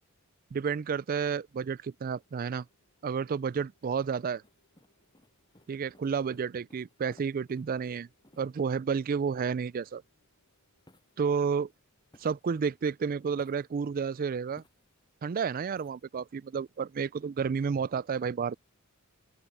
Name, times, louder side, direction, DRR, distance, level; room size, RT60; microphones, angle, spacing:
voice 1, 0.5-2.7 3.0-4.4 5.7-8.1 8.4-10.0 11.2-11.7 12.2-14.6 15.2-18.6, right 6 dB, 40° right, 0.3 m, -31 dB
sound 1, 1.9-16.5, left 2 dB, 65° left, 5.8 m, -77 dB
sound 2, 4.4-9.0 10.9-12.8 13.3-15.1 15.7-16.0, left 1 dB, 20° left, 7.8 m, -63 dB
open air
head